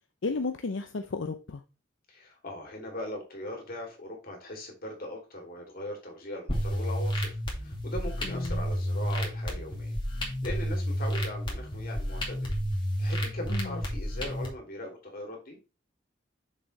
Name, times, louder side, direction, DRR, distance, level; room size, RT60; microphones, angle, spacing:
voice 1, 0.2-1.6 8.2-8.6 13.5-13.8, left 3 dB, 80° left, 0.6 m, -33 dB
voice 2, 2.1-12.5 13.0-15.6, left 1 dB, 50° left, 2.9 m, -40 dB
sound 1, 6.5-14.5, equal, 25° left, 2.4 m, -31 dB
7.1 x 6.8 x 3.2 m
head